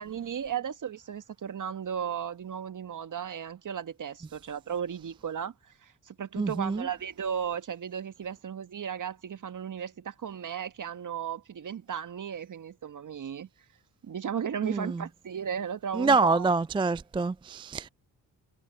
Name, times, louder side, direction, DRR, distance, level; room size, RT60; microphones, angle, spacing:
voice 1, 0.0-5.5 5.8-13.5 14.0-16.5, right 8 dB, 50° right, 1.7 m, -35 dB
voice 2, 6.4-6.9 14.6-15.0 15.9-17.9, right 4 dB, 15° right, 0.4 m, -26 dB
hypercardioid pair, 45°, 40 cm